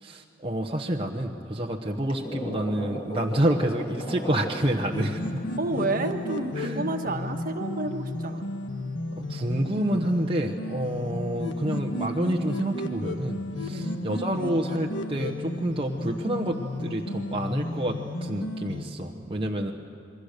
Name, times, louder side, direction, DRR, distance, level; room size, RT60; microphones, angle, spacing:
voice 1, 0.0-5.4 6.5-6.9 9.1-19.7, right 1 dB, 30° right, 0 dB, 1.1 m, -28 dB
sound 1, 1.8-6.0 6.5-6.8, equal, 30° left, 1.9 m, -37 dB
sound 2, 4.9-18.9, left 2 dB, 80° left, 1.6 m, -33 dB
voice 2, 5.6-8.5 13.7-14.0, right 2 dB, 50° right, 5 dB, 1.5 m, -30 dB
28.0 x 22.5 x 6.7 m, 2.4 s
head